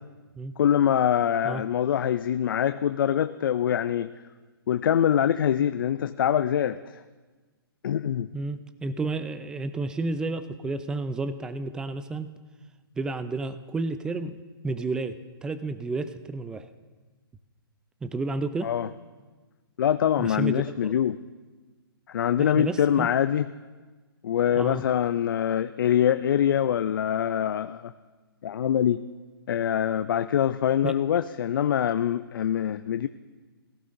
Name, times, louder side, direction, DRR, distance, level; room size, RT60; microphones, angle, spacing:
voice 1, 0.6-4.1 4.7-7.0 7.8-8.3 18.6-18.9 19.8-21.2 22.1-23.5 24.2-27.9 28.4-29.1 29.5-33.1, left 9 dB, 60° left, 12 dB, 0.4 m, -24 dB
voice 2, 8.3-12.3 13.0-14.4 14.6-15.2 15.4-16.7 18.0-18.7 20.2-20.9 22.4-23.1 24.6-24.8 30.8-30.9, right 3 dB, 5° right, 11 dB, 0.4 m, -31 dB
17.5 x 16.0 x 2.6 m, 1.3 s
hypercardioid pair, 135°, 13 cm